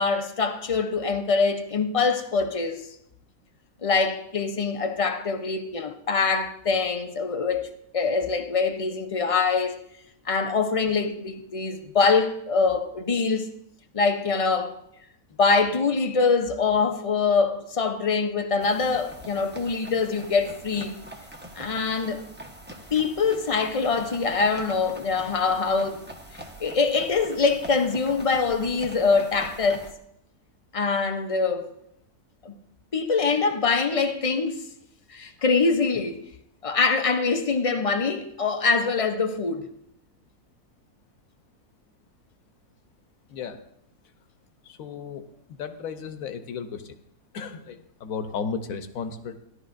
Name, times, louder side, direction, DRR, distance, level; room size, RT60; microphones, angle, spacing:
voice 1, 0.0-2.9 3.8-9.8 10.3-13.5 13.9-14.8 15.4-20.9 21.6-22.2 22.9-26.0 26.3-29.8 30.7-31.7 32.4-32.5 32.9-34.6 35.1-36.2 36.6-39.7, left 4 dB, 40° left, 0.4 m, -24 dB
sound 1, 18.6-29.9, right 1 dB, 10° right, 0.7 m, -43 dB
voice 2, 43.3-43.6 44.6-47.0 47.3-49.4, left 6 dB, 65° left, 1.2 m, -34 dB
16.0 x 11.5 x 2.6 m
omnidirectional pair, 1.7 m